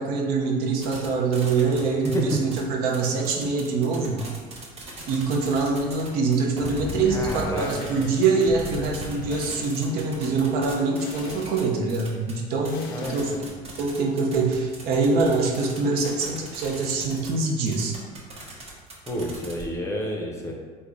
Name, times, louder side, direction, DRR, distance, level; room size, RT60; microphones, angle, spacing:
voice 1, 0.0-4.2 5.1-13.3 13.8-17.9, right 4 dB, 65° right, 0 dB, 0.6 m, -24 dB
sound 1, 0.8-1.1 1.3-2.6 2.9-12.3 12.6-17.3 17.6-19.6, right 3 dB, 35° right, 0.9 m, -40 dB
voice 2, 1.8-2.4 7.1-7.7 8.0-8.2 12.9-13.5 19.1-20.5, equal, 15° left, 0 dB, 0.6 m, -30 dB
sound 2, 6.6-9.8 11.0-11.6 12.7-13.4, left 3 dB, 65° left, 0.4 m, -37 dB
3.5 x 2.1 x 3.6 m, 1.5 s
supercardioid pair, 105°, 17 cm